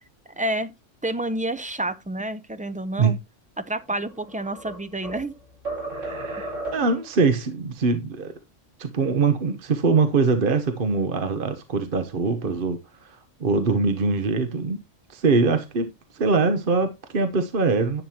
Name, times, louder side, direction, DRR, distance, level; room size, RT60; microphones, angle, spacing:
voice 1, 0.4-0.7 1.0-3.2 3.7-5.3, right 1 dB, 10° right, 0.4 m, -29 dB
sound 1, 4.0-5.3 5.7-7.1, right 2 dB, 85° right, 5.4 m, -34 dB
voice 2, 5.9-8.3 8.8-14.8 15.1-18.0, right 4 dB, 50° right, 1.1 m, -23 dB
11.0 x 8.1 x 2.9 m
omnidirectional pair, 1.3 m